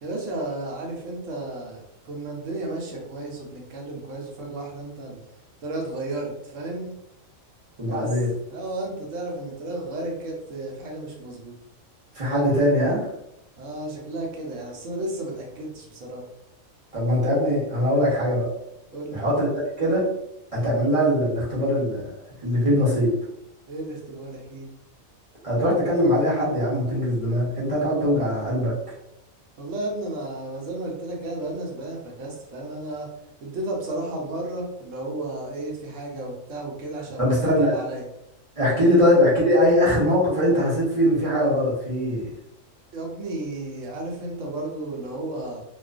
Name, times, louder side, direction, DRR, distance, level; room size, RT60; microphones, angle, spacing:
voice 1, 0.0-5.2 5.6-7.0 7.8-8.2 8.5-11.5 12.3-12.5 13.6-16.2 18.9-19.2 23.7-24.7 29.6-33.1 33.4-38.0 38.8-39.0 42.9-45.6, right 2 dB, 75° right, -1 dB, 1.0 m, -33 dB
voice 2, 7.8-8.3 12.1-13.0 16.9-18.5 19.1-19.5 19.8-20.1 20.5-22.0 22.4-23.1 25.4-28.7 37.2-37.7 38.6-42.3, equal, 30° right, -7 dB, 0.8 m, -21 dB
2.4 x 2.3 x 2.3 m, 0.82 s
omnidirectional pair, 1.4 m